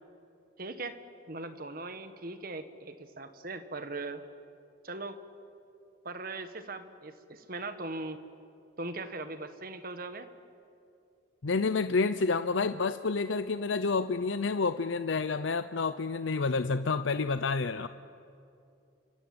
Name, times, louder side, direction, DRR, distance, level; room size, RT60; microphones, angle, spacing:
voice 1, 0.6-1.0 1.3-4.2 4.8-5.2 6.0-8.2 8.8-10.3, right 2 dB, 50° right, 9 dB, 1.6 m, -39 dB
voice 2, 11.4-17.9, left 4 dB, 80° left, 11 dB, 0.6 m, -29 dB
29.0 x 25.0 x 7.9 m, 2.5 s
head